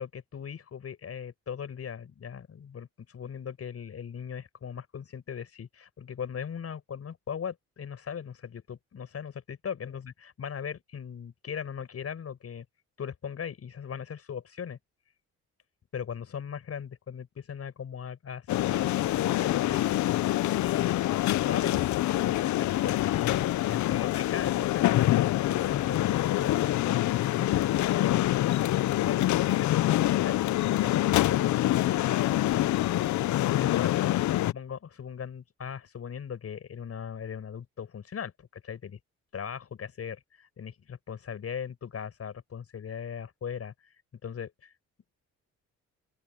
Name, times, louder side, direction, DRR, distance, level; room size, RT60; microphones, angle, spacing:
voice 1, 0.0-12.6 13.0-14.8 15.9-20.3 20.6-28.7 29.0-33.1 33.6-34.0 34.4-39.0 39.3-43.7 44.2-44.7, left 7 dB, 50° left, 6.8 m, -39 dB
sound 1, 18.5-34.5, left 15 dB, 70° left, 0.6 m, -26 dB
open air
cardioid pair, 90°, 30 cm